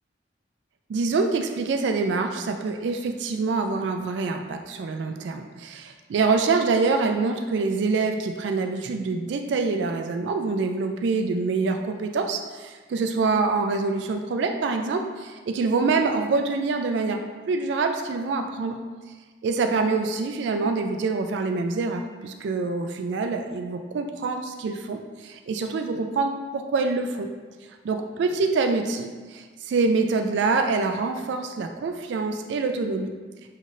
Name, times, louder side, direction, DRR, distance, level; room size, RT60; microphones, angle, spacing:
voice 1, 0.9-17.2 17.5-18.8 19.4-27.3 27.8-33.1, right 4 dB, 75° right, 5 dB, 0.3 m, -25 dB
5.5 x 3.1 x 2.5 m, 1.4 s
head